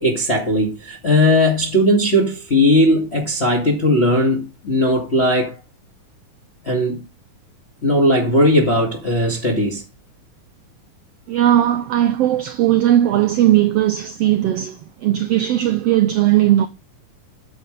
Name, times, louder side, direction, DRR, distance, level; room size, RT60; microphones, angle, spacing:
voice 1, 0.0-5.6 6.6-7.0 7.8-9.8, left 1 dB, 20° left, 2.1 m, -17 dB
voice 2, 11.3-16.7, right 12 dB, 85° right, 1.4 m, -17 dB
9.2 x 8.2 x 3.3 m
omnidirectional pair, 3.6 m